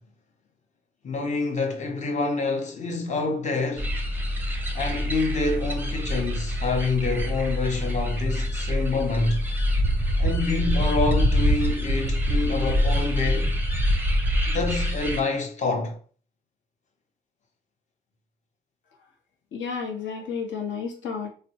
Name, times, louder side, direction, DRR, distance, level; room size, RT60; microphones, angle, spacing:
voice 1, 1.0-3.9 4.7-9.4 10.2-13.6 14.5-16.0, left 3 dB, 35° left, 0.8 m, -27 dB
sound 1, 3.8-15.2, equal, 10° right, 0.6 m, -25 dB
voice 2, 19.5-21.3, left 6 dB, 70° left, 0.9 m, -31 dB
3.2 x 2.1 x 2.8 m
cardioid pair, 90°, 20 cm